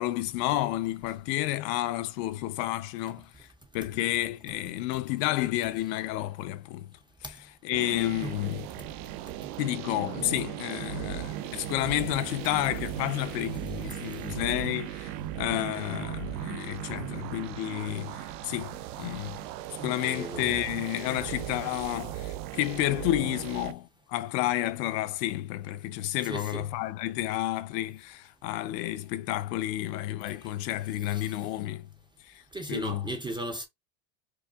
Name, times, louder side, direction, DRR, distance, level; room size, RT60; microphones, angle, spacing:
voice 1, 0.0-3.5 3.7-6.9 7.2-7.4 7.6-8.7 9.6-19.4 19.8-31.9 32.3-32.4 32.7-33.1, left 15 dB, 80° left, 0.7 m, -31 dB
sound 1, 7.7-23.7, right 12 dB, 80° right, 0.7 m, -37 dB
voice 2, 19.8-20.4 26.3-26.7 31.1-31.3 32.5-33.7, right 1 dB, 10° right, 0.4 m, -36 dB
4.9 x 2.5 x 2.3 m
supercardioid pair, 125°, 49 cm